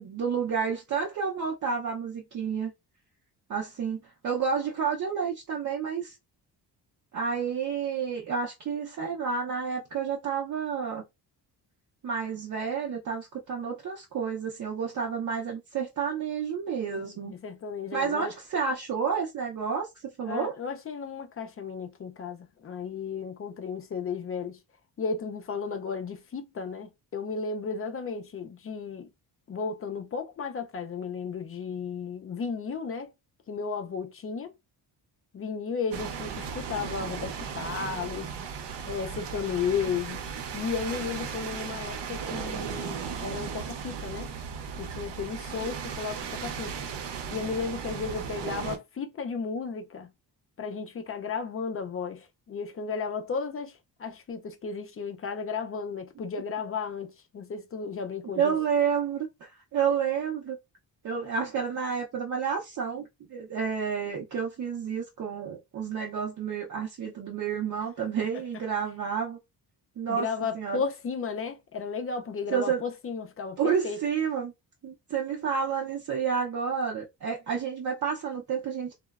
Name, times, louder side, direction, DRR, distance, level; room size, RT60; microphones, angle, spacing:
voice 1, 0.0-2.7 3.5-6.2 7.1-11.0 12.0-17.3 17.9-20.5 58.3-60.6 61.0-69.4 70.0-70.3 70.5-70.8 72.5-72.8 73.6-74.5 74.8-78.9, right 6 dB, 50° right, 0.6 m, -30 dB
voice 2, 16.9-18.3 20.2-24.6 25.0-29.1 29.5-33.1 33.5-34.5 35.3-38.3 38.8-40.2 40.5-44.3 44.8-46.8 47.3-50.1 50.6-58.5 70.1-74.0, left 5 dB, 35° left, 0.4 m, -34 dB
sound 1, 35.9-48.8, right 6 dB, 85° right, 0.7 m, -36 dB
2.9 x 2.1 x 2.3 m
cardioid pair, 125°, 41 cm